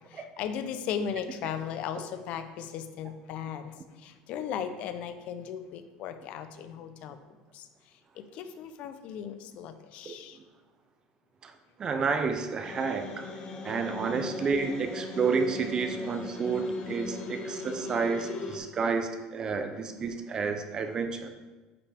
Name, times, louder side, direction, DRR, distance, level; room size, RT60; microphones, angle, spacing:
voice 1, 0.0-7.2 7.5-7.7 8.2-10.4, left 8 dB, 55° left, 9 dB, 0.6 m, -37 dB
voice 2, 11.8-13.3 13.6-21.3, right 5 dB, 30° right, 7 dB, 0.6 m, -30 dB
sound 1, 12.6-18.6, left 4 dB, 35° left, 0.9 m, -39 dB
9.4 x 5.6 x 3.5 m, 1.2 s
cardioid pair, 140°, 3 cm